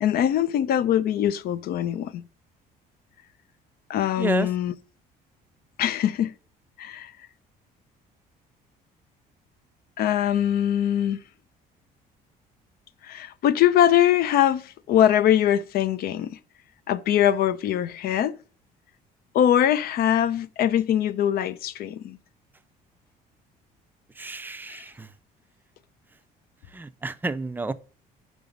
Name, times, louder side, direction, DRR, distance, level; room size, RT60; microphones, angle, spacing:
voice 1, 0.0-2.3 3.9-4.7 5.8-6.3 6.8-7.1 10.0-11.2 13.0-16.4 16.9-18.4 19.3-22.2, left 10 dB, 65° left, 0.6 m, -22 dB
voice 2, 4.2-4.5 24.2-25.1 26.7-27.7, right 3 dB, 10° right, 0.4 m, -30 dB
5.4 x 4.9 x 6.5 m
cardioid pair, 110°, 17 cm